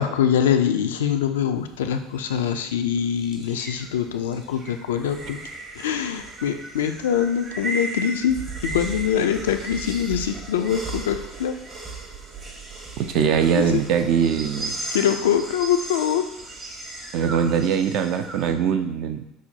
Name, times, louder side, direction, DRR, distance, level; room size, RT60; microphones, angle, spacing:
voice 1, 0.0-5.4 5.8-11.5 13.2-13.8 14.9-16.3, left 8 dB, 80° left, 7 dB, 0.3 m, -24 dB
sound 1, 1.6-18.5, right 2 dB, 35° right, 0.9 m, -36 dB
voice 2, 13.0-14.8 17.1-19.3, right 7 dB, 60° right, 8 dB, 0.4 m, -22 dB
6.0 x 2.1 x 2.8 m, 0.87 s
hypercardioid pair, 75°, 0 cm